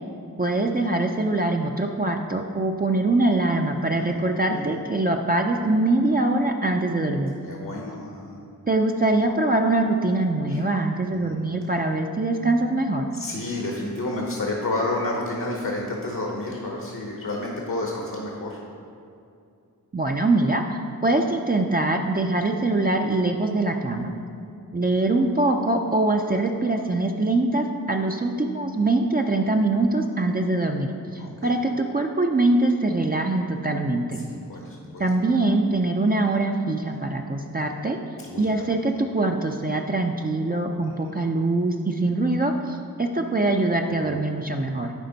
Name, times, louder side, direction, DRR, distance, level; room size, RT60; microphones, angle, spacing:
voice 1, 0.4-7.3 8.7-13.1 19.9-24.1 24.7-34.3 35.0-38.0 38.4-44.9, right 2 dB, 25° right, 2 dB, 0.4 m, -23 dB
voice 2, 7.4-8.5 10.5-10.6 11.1-11.4 13.1-18.7 31.2-31.6 34.2-35.1 38.2-38.6 41.0-41.1 43.7-44.2, left 2 dB, 65° left, -1 dB, 1.0 m, -31 dB
11.0 x 4.3 x 4.0 m, 2.5 s
wide cardioid pair, 45°, 36 cm